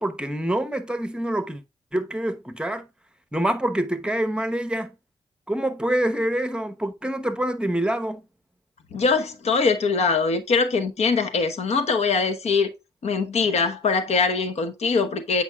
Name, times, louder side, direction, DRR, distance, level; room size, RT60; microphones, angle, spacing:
voice 1, 0.0-1.6 1.9-2.9 3.3-4.9 5.5-8.2, right 1 dB, 10° right, 1.0 m, -26 dB
voice 2, 8.9-12.7 13.0-15.4, left 4 dB, 65° left, 1.1 m, -22 dB
8.1 x 5.2 x 2.3 m
cardioid pair, 60°, 12 cm